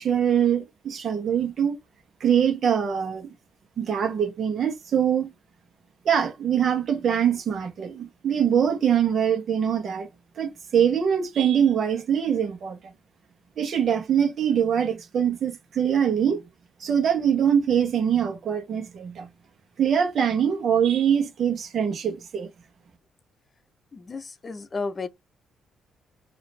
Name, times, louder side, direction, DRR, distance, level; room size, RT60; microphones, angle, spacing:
voice 1, 0.0-1.8 2.2-3.3 3.8-5.3 6.0-10.1 10.4-12.9 13.6-16.4 16.8-19.3 19.8-22.5, right 8 dB, 55° right, 1.5 m, -23 dB
voice 2, 23.9-25.1, left 4 dB, 35° left, 0.7 m, -33 dB
4.9 x 2.9 x 3.3 m
cardioid pair, 90°, 0 cm